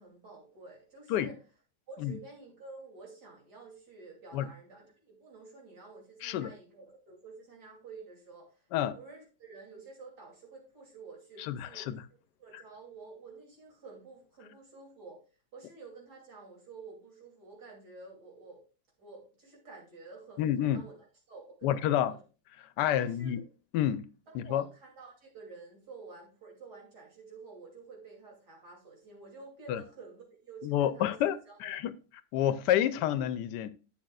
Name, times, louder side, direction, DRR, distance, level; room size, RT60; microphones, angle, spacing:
voice 1, 0.0-1.4 1.9-15.2 15.5-18.6 19.0-22.2 23.0-23.3 24.3-31.2 31.5-31.8, right 4 dB, 75° right, 3.3 m, -50 dB
voice 2, 11.4-12.0 12.5-12.6 20.4-20.8 21.6-22.1 22.8-23.4 23.7-24.1 24.3-24.6 29.7-29.8 30.6-31.9 32.3-33.7, left 11 dB, 85° left, 1.2 m, -29 dB
10.5 x 7.9 x 2.3 m
omnidirectional pair, 1.8 m